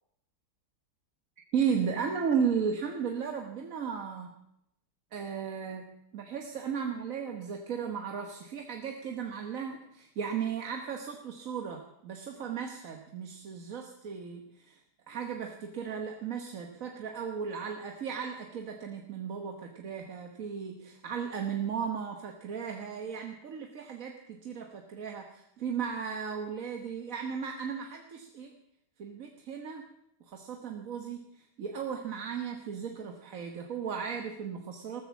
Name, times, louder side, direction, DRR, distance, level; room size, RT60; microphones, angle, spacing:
voice 1, 1.5-4.3 5.1-14.8 15.1-28.6 29.0-29.8 30.3-35.0, right 7 dB, 55° right, 3 dB, 1.5 m, -35 dB
14.5 x 13.5 x 7.2 m, 0.78 s
omnidirectional pair, 1.8 m